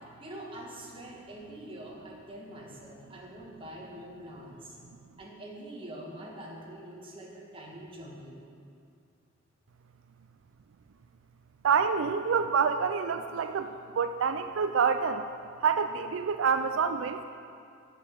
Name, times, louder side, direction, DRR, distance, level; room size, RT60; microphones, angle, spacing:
voice 1, 0.2-4.8 5.2-8.4, right 1 dB, 25° right, -3 dB, 1.8 m, -44 dB
voice 2, 11.6-15.3 15.6-17.3, right 6 dB, 75° right, 9 dB, 0.4 m, -27 dB
9.2 x 8.3 x 7.5 m, 2.4 s
head